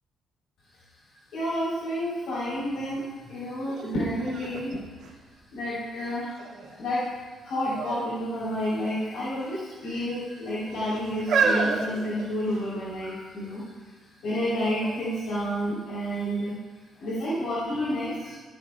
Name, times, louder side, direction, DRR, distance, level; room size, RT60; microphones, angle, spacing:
voice 1, 1.3-4.8 5.5-6.3 6.8-7.0 7.4-13.6 14.2-16.6 17.0-18.4, equal, 80° left, -10 dB, 3.7 m, -30 dB
sound 1, 3.7-3.8 4.3-5.8 6.4-6.9 7.7-8.1 8.4-8.5 9.4-10.0 10.7-12.8 13.5-13.6, right 5 dB, 85° right, 2.1 m, -29 dB
14.0 x 11.0 x 2.4 m, 1.4 s
cardioid pair, 90°, 0 cm